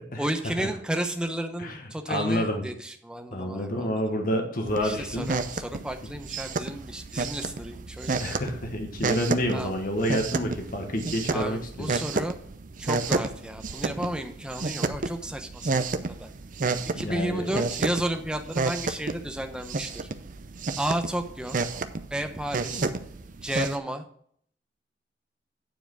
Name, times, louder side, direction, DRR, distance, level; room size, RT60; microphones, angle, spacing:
voice 1, 0.2-3.9 4.8-8.3 9.5-9.7 11.3-12.4 12.8-15.8 16.2-16.3 16.9-20.1 20.8-21.6 22.1-22.9 23.4-24.0, right 1 dB, 5° right, 5 dB, 0.8 m, -32 dB
voice 2, 2.1-2.6 3.3-5.3 8.2-11.9 16.6-17.6, equal, 50° left, 4 dB, 1.3 m, -28 dB
sound 1, 4.7-23.8, right 3 dB, 45° right, 0.6 m, -31 dB
9.3 x 4.9 x 6.1 m, 0.62 s
head